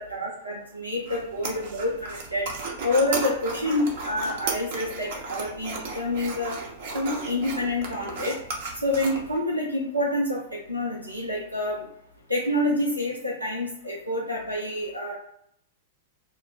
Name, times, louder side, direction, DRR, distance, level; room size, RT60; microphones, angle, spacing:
voice 1, 0.0-2.5 2.8-6.5 6.9-8.3 8.8-10.4 10.7-11.8 12.3-15.1, left 1 dB, 90° right, -3 dB, 0.7 m, -27 dB
sound 1, 1.1-9.4, right 3 dB, 55° right, 0.8 m, -35 dB
4.4 x 2.2 x 2.3 m, 0.72 s
figure-of-eight pair, 100°, 0 cm